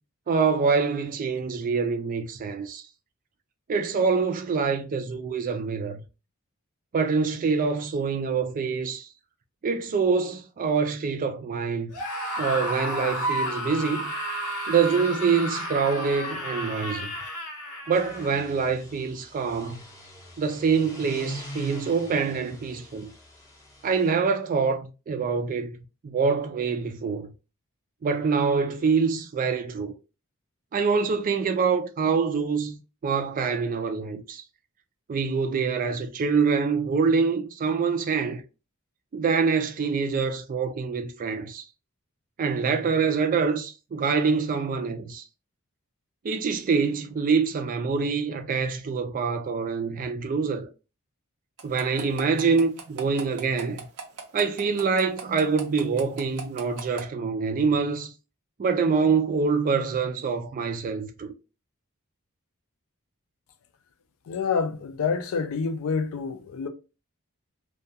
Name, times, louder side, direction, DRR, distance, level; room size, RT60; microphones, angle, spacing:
voice 1, 0.3-2.8 3.7-6.0 6.9-9.1 9.6-11.9 12.4-14.1 14.7-17.1 17.9-19.8 20.4-23.1 23.8-25.8 26.0-27.3 28.0-29.9 30.7-32.8 33.0-34.4 35.1-38.4 39.1-41.6 42.4-45.2 46.2-50.7 51.6-53.8 54.3-58.1 58.6-61.3, right 5 dB, 35° right, 0.3 m, -25 dB
Screaming, 11.9-18.4, equal, 90° left, 0.8 m, -32 dB
sound 1, 17.8-24.1, right 1 dB, 15° left, 0.6 m, -42 dB
sound 2, 51.6-57.0, right 6 dB, 85° right, 0.6 m, -38 dB
voice 2, 64.3-66.7, left 5 dB, 65° left, 0.3 m, -27 dB
2.3 x 2.2 x 2.6 m
head